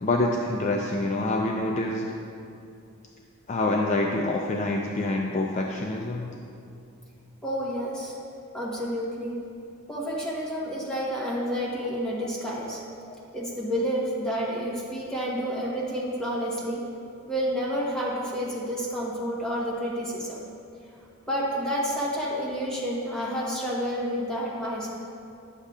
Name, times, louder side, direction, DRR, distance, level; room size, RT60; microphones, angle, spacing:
voice 1, 0.0-2.0 3.5-6.3 12.2-12.3 13.1-13.2, left 2 dB, 35° left, 0 dB, 0.3 m, -26 dB
voice 2, 7.4-8.1 8.5-9.4 9.9-12.8 13.3-16.8 17.3-20.5 21.3-24.9, equal, 5° left, -6 dB, 1.1 m, -29 dB
9.8 x 6.5 x 2.4 m, 2.6 s
head